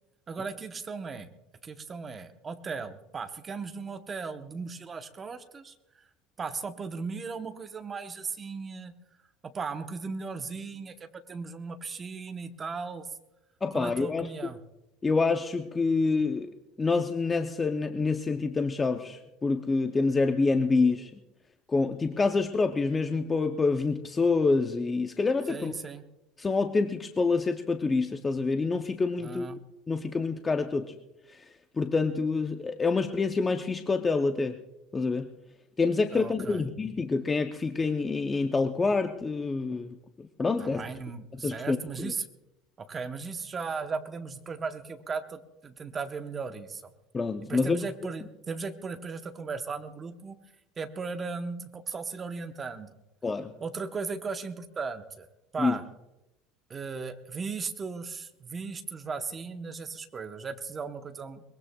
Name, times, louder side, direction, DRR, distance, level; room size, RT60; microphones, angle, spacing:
voice 1, 0.3-1.3 1.6-5.7 6.4-8.9 9.5-13.1 13.7-14.6 25.5-26.0 29.2-29.6 36.1-36.7 40.6-42.3 42.8-46.9 47.4-50.4 50.8-52.9 53.6-55.3 55.5-55.8 56.7-61.4, right 4 dB, 20° right, 7 dB, 0.8 m, -37 dB
voice 2, 13.6-14.5 15.0-16.5 16.8-21.1 21.7-25.7 26.4-29.5 29.9-30.9 31.3-31.5 31.8-34.6 34.9-35.3 35.8-40.9 41.3-42.1 47.1-47.8 53.2-53.5 55.6-55.8, left 4 dB, 15° left, 6 dB, 0.5 m, -27 dB
22.5 x 21.0 x 2.2 m, 0.95 s
cardioid pair, 170°, 0 cm